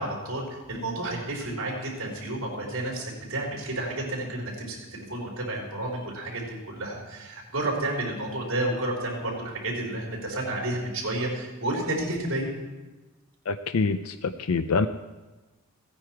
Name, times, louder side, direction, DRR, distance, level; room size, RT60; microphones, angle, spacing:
voice 1, 0.0-12.5, right 1 dB, 65° right, -2 dB, 4.2 m, -31 dB
voice 2, 13.5-14.9, left 4 dB, 75° left, 10 dB, 0.5 m, -25 dB
16.0 x 9.8 x 4.6 m, 1.2 s
head